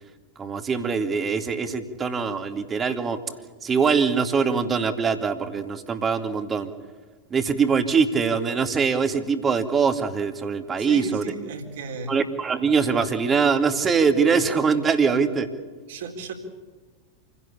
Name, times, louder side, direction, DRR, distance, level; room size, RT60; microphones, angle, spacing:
voice 1, 0.4-3.2 3.6-6.7 7.3-11.2 12.1-15.5, right 5 dB, 20° right, 8 dB, 2.4 m, -23 dB
voice 2, 10.9-12.1 15.9-16.3, right 3 dB, 55° right, 5 dB, 4.0 m, -34 dB
28.5 x 17.0 x 8.5 m, 1.4 s
figure-of-eight pair, 90°, 0 cm